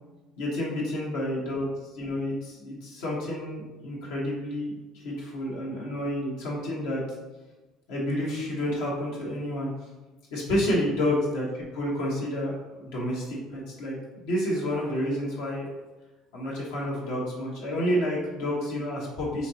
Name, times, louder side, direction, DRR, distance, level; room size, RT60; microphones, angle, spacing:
voice 1, 0.4-1.7 1.9-7.0 7.9-9.7 10.3-15.7 16.3-19.5, left 1 dB, 85° left, -5 dB, 1.1 m, -29 dB
4.3 x 2.8 x 2.8 m, 1.1 s
supercardioid pair, 85°, 0 cm